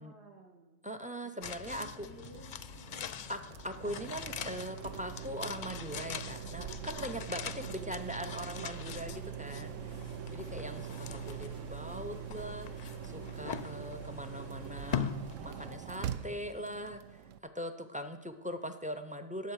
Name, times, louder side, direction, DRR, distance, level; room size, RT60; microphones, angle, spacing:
voice 1, 0.0-0.8 1.2-3.3 7.7-8.0 9.4-10.1, right 3 dB, 60° right, -1 dB, 1.6 m, -55 dB
voice 2, 0.8-2.1 3.3-3.4 3.6-9.7 10.3-15.0 15.4-17.2 17.5-19.5, equal, 15° right, 8 dB, 0.3 m, -41 dB
sound 1, 1.4-16.6 16.9-17.0, left 7 dB, 55° left, 0.5 m, -43 dB
sound 2, 2.2-17.4, right 9 dB, 85° right, 1.0 m, -43 dB
sound 3, 6.1-13.8, right 2 dB, 45° right, 1.6 m, -60 dB
18.0 x 7.1 x 4.8 m, 1.1 s
omnidirectional pair, 1.3 m